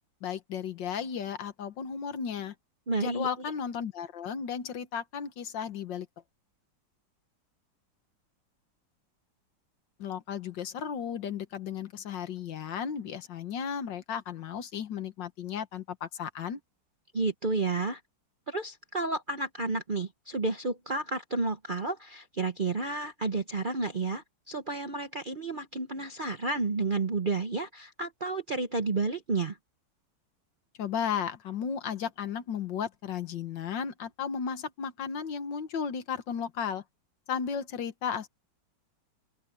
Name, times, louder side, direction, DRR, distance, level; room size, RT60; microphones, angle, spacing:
voice 1, 0.2-2.5 3.0-6.1 10.0-16.6 30.8-36.8 37.3-38.3, left 7 dB, 75° left, 1.9 m, -34 dB
voice 2, 2.9-3.3 17.1-18.0 18.5-29.6, right 3 dB, 40° right, 0.7 m, -31 dB
open air
omnidirectional pair, 2.0 m